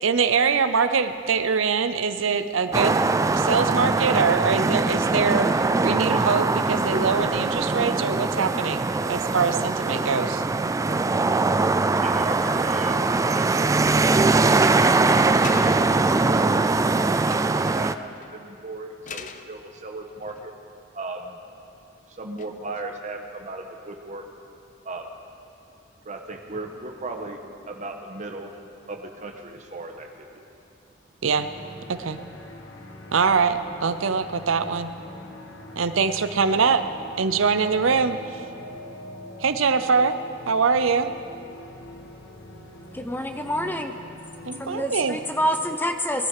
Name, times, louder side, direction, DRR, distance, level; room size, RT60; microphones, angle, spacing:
voice 1, 0.0-3.0 3.3-5.5 5.8-10.4 31.2-31.5 31.9-32.2 33.1-34.9 35.8-36.8 37.2-38.2 39.4-40.2 40.5-41.1 44.5-45.2, right 5 dB, 90° right, 11 dB, 0.7 m, -23 dB
sound 1, 2.7-17.9, right 3 dB, 15° right, 0.3 m, -22 dB
voice 2, 12.0-13.0 15.4-15.8 16.2-16.6 17.3-20.5 20.9-21.4 22.1-24.2 24.8-25.0 26.0-27.4 27.7-28.5 28.9-30.4, right 2 dB, 40° right, 2 dB, 1.3 m, -36 dB
sound 2, 15.4-16.1 17.4-17.9 18.2-18.4 19.1-19.6 20.1-20.7 22.4-22.8, left 6 dB, 40° left, 0.6 m, -41 dB
sound 3, 31.3-45.8, left 1 dB, 65° left, 1.5 m, -43 dB
voice 3, 42.9-43.9 44.6-46.3, equal, 10° left, 6 dB, 0.8 m, -27 dB
20.0 x 11.5 x 4.9 m, 2.9 s
head